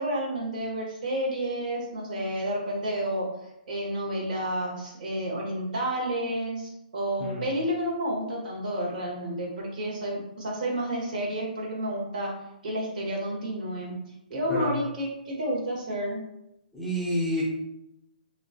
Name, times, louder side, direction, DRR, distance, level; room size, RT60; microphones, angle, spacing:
voice 1, 0.0-12.3 12.6-13.9 14.3-16.2, right 1 dB, 65° right, -3 dB, 1.5 m, -30 dB
voice 2, 16.7-17.4, equal, ahead, -7 dB, 0.6 m, -28 dB
2.9 x 2.7 x 2.7 m, 0.84 s
hypercardioid pair, 155°, 5 cm